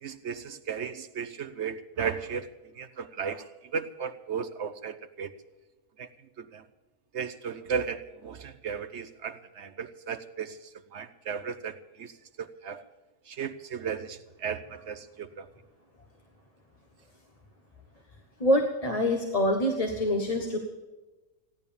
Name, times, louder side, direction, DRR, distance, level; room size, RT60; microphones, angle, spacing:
voice 1, 0.0-2.5 2.8-5.3 6.0-6.1 6.4-6.6 7.1-12.1 12.4-12.8 13.3-15.5, right 6 dB, 60° right, 11 dB, 0.9 m, -35 dB
voice 2, 18.4-20.6, left 1 dB, 25° left, 2 dB, 1.3 m, -25 dB
16.0 x 11.0 x 7.0 m, 1.2 s
omnidirectional pair, 1.6 m